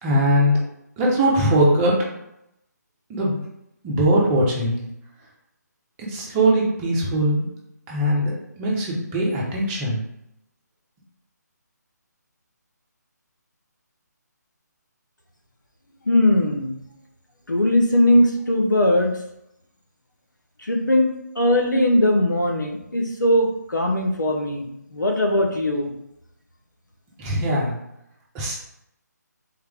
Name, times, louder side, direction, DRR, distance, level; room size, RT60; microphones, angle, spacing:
voice 1, 0.0-0.5 1.0-2.0 3.1-3.4 3.8-4.8 6.1-7.5 7.9-10.0 27.2-27.7 28.3-28.6, right 1 dB, 15° right, -4 dB, 1.1 m, -21 dB
voice 2, 16.1-16.8 17.5-19.1 20.6-21.1 21.3-25.9, left 1 dB, 90° left, 1 dB, 1.1 m, -20 dB
3.9 x 3.4 x 3.6 m, 0.81 s
figure-of-eight pair, 150°, 10 cm